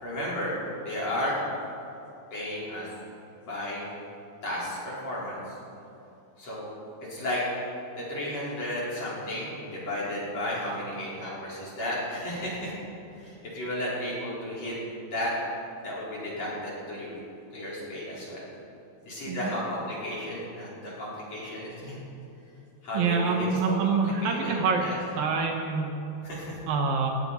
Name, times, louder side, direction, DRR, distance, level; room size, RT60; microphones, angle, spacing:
voice 1, 0.0-0.6 0.8-1.4 2.3-2.9 3.4-3.8 4.4-5.5 6.4-6.7 7.1-7.4 8.0-12.7 13.2-14.7 15.1-15.3 15.8-17.1 17.5-18.5 19.1-22.0 22.8-24.5 24.8-25.0 26.2-26.6, left 1 dB, 40° left, -7 dB, 5.6 m, -33 dB
voice 2, 22.9-24.9 25.2-26.0 26.7-27.1, right 5 dB, 70° right, 2 dB, 2.7 m, -26 dB
19.5 x 16.5 x 4.3 m, 2.8 s
omnidirectional pair, 4.5 m